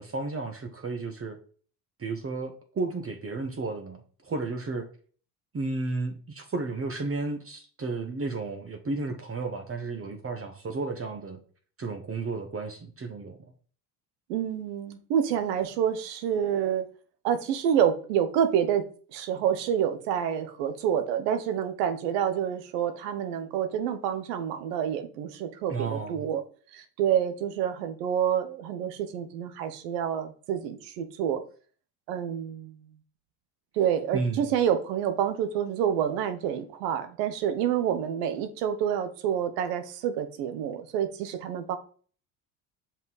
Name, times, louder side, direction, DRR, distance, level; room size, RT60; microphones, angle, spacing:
voice 1, 0.0-1.4 2.0-4.8 5.5-11.4 11.8-13.4 25.7-26.3 34.1-34.5, right 3 dB, 30° right, 1.2 m, -33 dB
voice 2, 14.3-16.8 17.2-18.8 19.1-26.4 26.7-31.4 32.1-32.8 33.8-41.8, right 9 dB, 85° right, 1.1 m, -28 dB
5.6 x 4.4 x 4.0 m
supercardioid pair, 75°, 47 cm